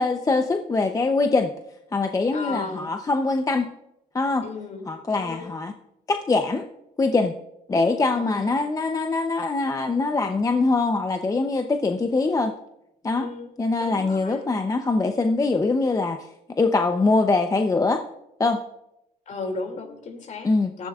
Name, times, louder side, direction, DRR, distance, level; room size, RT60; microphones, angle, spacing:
voice 1, 0.0-1.5 1.9-3.7 4.1-4.5 4.9-5.7 6.1-6.7 7.0-7.3 7.7-12.5 13.0-13.3 13.6-16.3 16.6-18.0 18.4-18.6 20.4-20.7, left 3 dB, 20° left, 5 dB, 0.7 m, -23 dB
voice 2, 2.3-2.9 4.4-4.8 5.1-5.5 8.1-8.6 13.2-13.5 13.8-14.5 19.3-20.5 20.8-20.9, left 3 dB, 45° left, 5 dB, 2.6 m, -35 dB
18.0 x 14.0 x 2.4 m, 0.84 s
cardioid pair, 110°, 17 cm